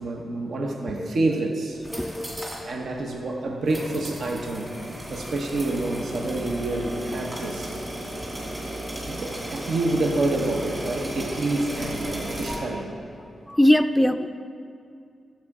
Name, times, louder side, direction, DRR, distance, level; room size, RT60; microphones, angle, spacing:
voice 1, 0.0-1.8 2.6-4.7 5.1-7.8 9.0-12.9, right 2 dB, 70° right, 2 dB, 0.9 m, -28 dB
sound 1, 1.7-2.7 3.0-3.1 3.7-12.6, right 1 dB, 25° right, 2.6 m, -34 dB
voice 2, 1.9-2.7 8.7-8.9 12.5-12.8 13.5-14.3, left 1 dB, 10° left, 10 dB, 0.4 m, -22 dB
13.0 x 7.5 x 3.6 m, 2.5 s
cardioid pair, 85°, 0 cm